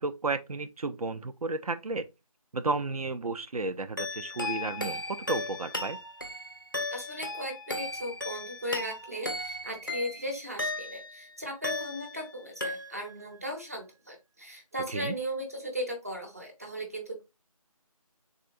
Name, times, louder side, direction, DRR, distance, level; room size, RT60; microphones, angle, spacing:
voice 1, 0.0-2.1 2.5-6.0 14.9-15.1, right 3 dB, 80° right, 0.4 m, -33 dB
sound 1, 4.0-11.2 11.6-12.3 12.6-13.2, left 2 dB, 35° left, 0.4 m, -36 dB
voice 2, 6.9-17.3, equal, 25° right, 0.5 m, -37 dB
3.6 x 2.1 x 2.4 m
figure-of-eight pair, 165°, 19 cm